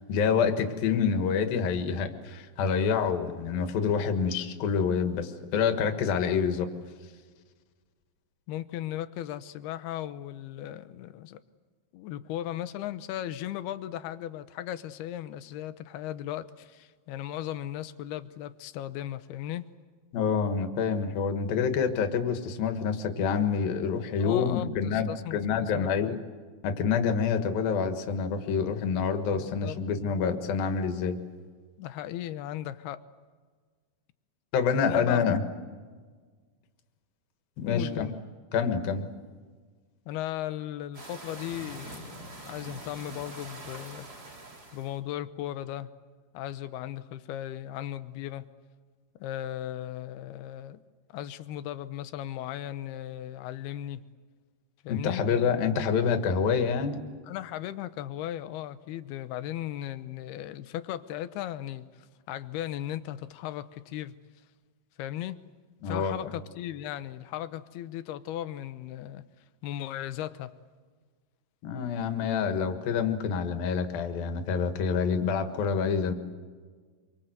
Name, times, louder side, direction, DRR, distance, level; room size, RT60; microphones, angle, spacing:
voice 1, 0.1-6.7 20.1-26.2 26.6-31.2 34.5-35.4 37.6-38.1 38.5-39.0 54.9-57.0 65.8-66.3 71.6-76.1, left 6 dB, 70° left, 6 dB, 3.4 m, -27 dB
voice 2, 8.5-11.4 11.9-19.7 24.2-26.2 29.3-29.8 30.1-30.2 31.8-33.0 34.8-35.2 37.6-38.1 40.1-44.1 44.7-45.9 46.3-48.5 49.2-50.8 51.1-54.0 54.8-55.2 57.3-64.2 65.0-65.4 65.8-69.2 69.6-70.6, left 12 dB, 90° left, 12 dB, 2.9 m, -37 dB
sound 1, 40.9-45.0, right 2 dB, 25° right, 3.0 m, -44 dB
26.0 x 24.5 x 7.9 m, 1.5 s
omnidirectional pair, 4.4 m